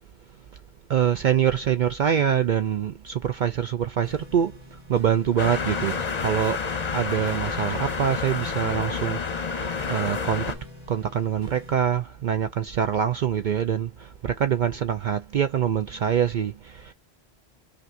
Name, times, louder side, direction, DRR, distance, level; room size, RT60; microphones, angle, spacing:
voice 1, 0.9-4.5 4.9-6.6 6.9-10.5 10.9-16.9, right 9 dB, 60° right, 0.6 m, -25 dB
sound 1, 4.0-11.8, left 3 dB, 30° right, 2.5 m, -47 dB
sound 2, 5.4-10.5, left 5 dB, 40° left, 0.9 m, -29 dB
5.8 x 2.6 x 2.6 m
omnidirectional pair, 1.1 m